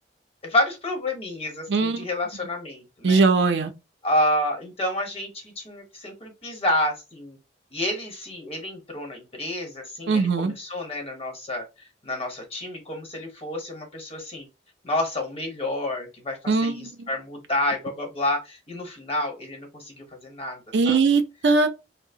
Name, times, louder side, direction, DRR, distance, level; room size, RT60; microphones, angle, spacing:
voice 1, 0.4-3.2 4.0-7.4 7.7-14.5 14.8-21.0, left 1 dB, 35° left, 1.1 m, -29 dB
voice 2, 1.7-2.1 3.0-3.7 10.1-10.5 16.5-17.1 20.7-21.7, right 4 dB, 70° right, 0.5 m, -20 dB
2.7 x 2.0 x 2.7 m
head